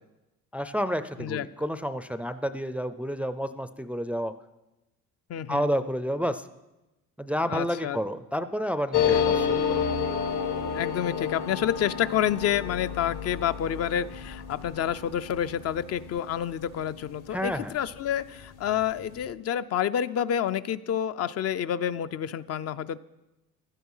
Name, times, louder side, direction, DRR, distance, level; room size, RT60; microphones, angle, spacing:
voice 1, 0.5-4.3 5.5-6.5 7.2-9.8 17.3-17.7, equal, 5° right, 11 dB, 0.4 m, -30 dB
voice 2, 5.3-5.7 7.4-8.0 9.1-9.2 10.7-23.0, left 9 dB, 50° left, 13 dB, 0.5 m, -29 dB
sound 1, 8.9-18.1 18.4-18.5 18.7-19.3, left 7 dB, 70° left, 1.7 m, -30 dB
15.5 x 12.0 x 5.5 m, 1.0 s
cardioid pair, 135°, 32 cm